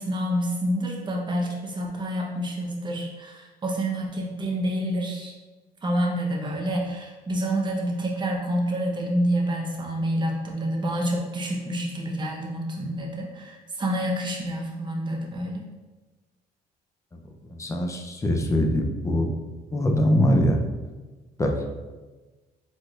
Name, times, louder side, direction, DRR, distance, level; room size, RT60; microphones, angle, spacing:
voice 1, 0.0-5.3 5.8-15.6, equal, 25° right, -1 dB, 1.1 m, -28 dB
voice 2, 17.5-19.3 19.7-20.6 21.4-21.5, equal, 15° left, 2 dB, 0.6 m, -22 dB
5.1 x 3.9 x 2.5 m, 1.2 s
cardioid pair, 110°, 17 cm